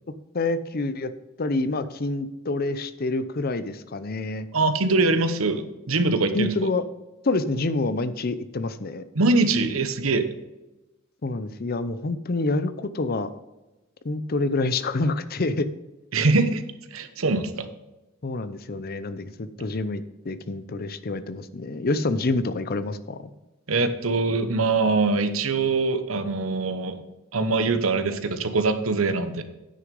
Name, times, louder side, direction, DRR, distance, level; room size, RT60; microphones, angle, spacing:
voice 1, 0.3-1.1 1.4-4.5 6.3-6.8 7.2-9.0 11.2-13.4 14.0-15.7 18.2-23.2, left 2 dB, 45° left, 13 dB, 0.6 m, -27 dB
voice 2, 4.5-6.5 9.1-10.3 16.1-17.7 23.7-27.0 27.3-29.4, right 3 dB, 85° right, 10 dB, 1.0 m, -23 dB
9.7 x 6.2 x 5.3 m, 1.0 s
head